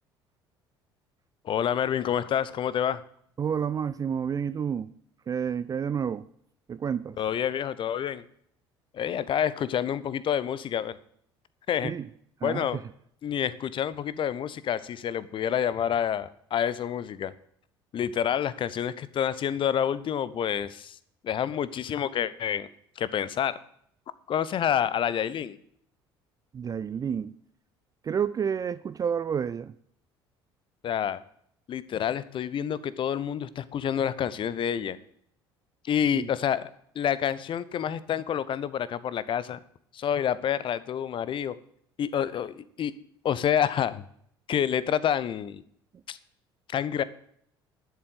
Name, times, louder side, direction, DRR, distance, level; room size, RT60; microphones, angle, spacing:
voice 1, 1.4-3.0 7.2-8.2 8.9-11.0 11.7-11.9 12.4-12.8 13.2-17.3 17.9-21.0 21.2-22.7 23.0-23.6 24.3-25.6 30.8-31.2 31.7-35.0 35.8-39.6 39.9-41.5 42.0-42.9 43.2-44.0 44.5-45.6 46.1-46.2 46.7-47.0, left 9 dB, 40° left, 17 dB, 0.8 m, -28 dB
voice 2, 3.4-4.9 5.3-6.2 6.7-7.2 11.8-12.1 12.4-12.8 26.5-27.3 28.0-29.7 36.1-36.3, right 7 dB, 25° right, 15 dB, 0.4 m, -29 dB
12.0 x 7.7 x 7.7 m, 0.68 s
figure-of-eight pair, 60°, 13 cm